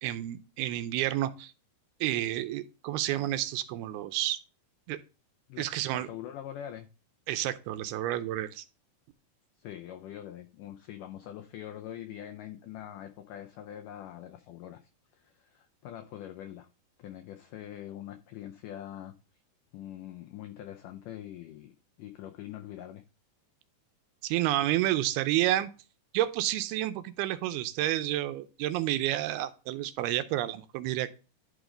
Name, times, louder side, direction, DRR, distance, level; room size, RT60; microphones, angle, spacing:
voice 1, 0.0-1.5 2.0-4.4 4.9-5.0 5.6-6.1 7.3-8.7 24.2-25.7 26.1-31.1, right 14 dB, 80° right, 11 dB, 2.5 m, -30 dB
voice 2, 5.5-6.9 9.6-14.8 15.1-16.7 17.0-19.1 19.7-21.7 22.0-23.0, left 11 dB, 90° left, 7 dB, 1.8 m, -43 dB
11.0 x 5.1 x 3.8 m, 0.33 s
omnidirectional pair, 4.6 m